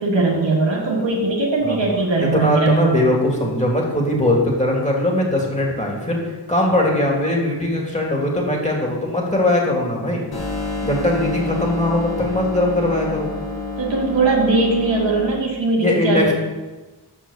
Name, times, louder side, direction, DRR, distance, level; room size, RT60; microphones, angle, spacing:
voice 1, 0.0-3.0 13.8-16.3, right 3 dB, 85° right, -4 dB, 1.6 m, -19 dB
voice 2, 2.2-10.2 10.8-13.3 15.8-16.3, left 1 dB, 15° left, -1 dB, 2.8 m, -20 dB
sound 1, 10.3-15.3, left 3 dB, 55° left, 3.0 m, -28 dB
6.6 x 5.7 x 6.8 m, 1.2 s
cardioid pair, 45°, 43 cm